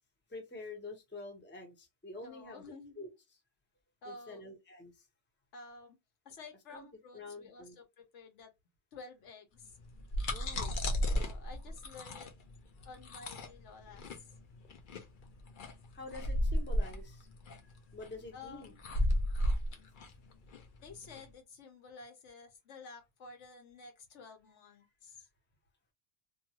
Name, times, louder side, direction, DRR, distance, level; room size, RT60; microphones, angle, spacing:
voice 1, 0.3-2.6 3.0-3.1 4.1-5.0 6.7-6.9 7.1-7.8 10.3-10.7 15.9-17.3 17.9-18.7, left 2 dB, 10° left, 0.7 m, -47 dB
voice 2, 2.2-2.9 4.0-4.4 5.5-6.0 6.2-8.5 8.9-9.8 11.1-12.3 12.8-14.3 18.3-18.8 20.8-25.3, left 4 dB, 75° left, 1.1 m, -52 dB
sound 1, 9.8-21.2, equal, 55° left, 0.6 m, -34 dB
2.6 x 2.4 x 2.8 m
omnidirectional pair, 1.2 m